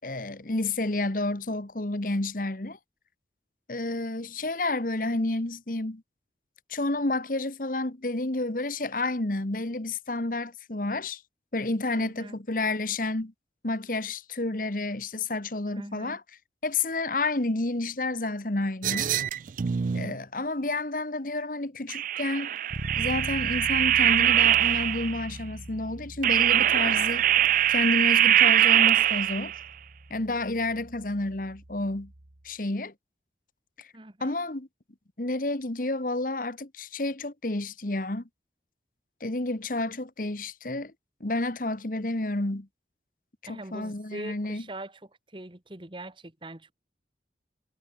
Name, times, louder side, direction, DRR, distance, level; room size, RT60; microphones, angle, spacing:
voice 1, 0.0-2.8 3.7-6.0 6.7-11.2 11.5-13.3 13.6-16.2 16.6-19.1 19.9-22.5 22.9-27.3 27.7-29.5 30.1-32.1 32.4-32.9 33.8-33.9 34.2-34.7 35.2-38.2 39.2-40.9 41.2-42.7 43.5-44.6, left 2 dB, 50° left, 1.4 m, -30 dB
voice 2, 11.9-12.4 15.6-16.2 33.9-34.4 43.5-46.7, right 1 dB, 25° right, 1.5 m, -42 dB
sound 1, 18.8-20.1 21.9-25.2 26.2-29.6, right 12 dB, 45° right, 0.4 m, -23 dB
Bass guitar, 22.7-32.5, right 1 dB, 75° right, 1.8 m, -42 dB
head